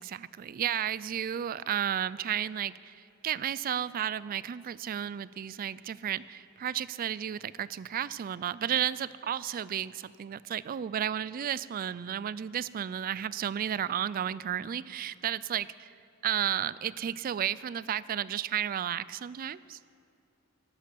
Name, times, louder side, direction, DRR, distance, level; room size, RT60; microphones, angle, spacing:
voice 1, 0.0-15.9 16.2-19.8, right 9 dB, 40° right, 19 dB, 0.3 m, -33 dB
12.0 x 12.0 x 7.5 m, 2.6 s
head